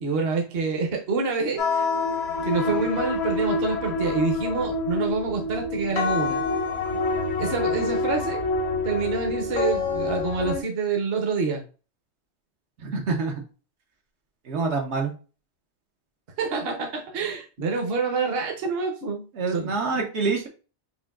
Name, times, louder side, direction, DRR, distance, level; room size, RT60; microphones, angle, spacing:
voice 1, 0.0-1.9 2.4-6.4 7.4-8.4 8.8-11.6 16.4-19.2 19.5-20.0, right 4 dB, 60° right, 2 dB, 1.0 m, -27 dB
sound 1, 1.6-10.6, left 3 dB, 75° left, 0.9 m, -27 dB
voice 2, 12.8-13.3 14.4-15.1 19.3-20.5, right 4 dB, 85° right, 1 dB, 1.1 m, -26 dB
5.5 x 2.5 x 2.3 m, 0.35 s
omnidirectional pair, 1.1 m